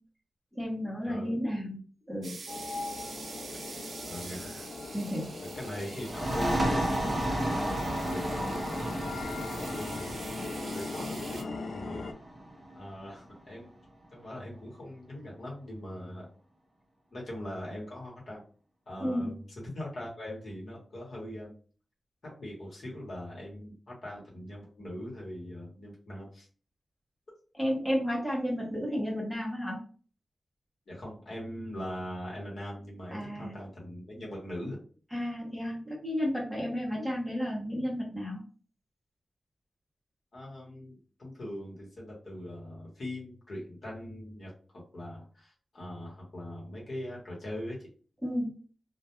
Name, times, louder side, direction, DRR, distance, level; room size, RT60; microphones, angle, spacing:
voice 1, 0.5-1.8 2.1-2.3 4.9-5.3 19.0-19.3 27.6-29.8 33.1-33.5 35.1-38.4 48.2-48.5, equal, 5° left, -5 dB, 0.8 m, -32 dB
sound 1, 2.2-11.4, right 4 dB, 65° right, 0.4 m, -46 dB
sound 2, 2.5-12.1, left 3 dB, 75° left, 0.3 m, -40 dB
voice 2, 4.0-4.7 5.4-10.2 10.7-12.1 12.7-13.7 14.1-16.3 17.1-18.4 18.9-21.5 22.2-26.5 30.9-34.8 40.3-47.9, left 1 dB, 55° left, -4 dB, 1.0 m, -41 dB
sound 3, 6.0-13.4, right 1 dB, 25° right, 0.7 m, -33 dB
2.2 x 2.2 x 2.9 m, 0.40 s
wide cardioid pair, 175°, 0 cm